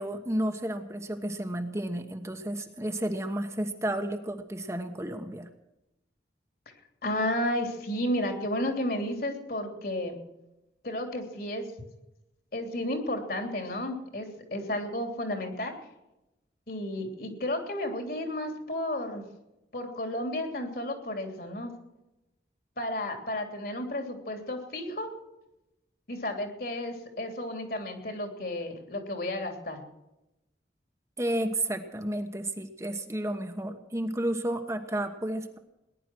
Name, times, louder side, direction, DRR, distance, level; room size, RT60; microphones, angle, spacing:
voice 1, 0.0-5.5 31.2-35.6, right 1 dB, 15° right, 5 dB, 1.1 m, -32 dB
voice 2, 7.0-10.2 10.8-11.7 12.5-15.7 16.7-19.2 19.7-21.7 22.8-25.1 26.1-29.8, left 1 dB, 55° left, 5 dB, 3.2 m, -32 dB
19.0 x 11.0 x 6.2 m, 0.92 s
head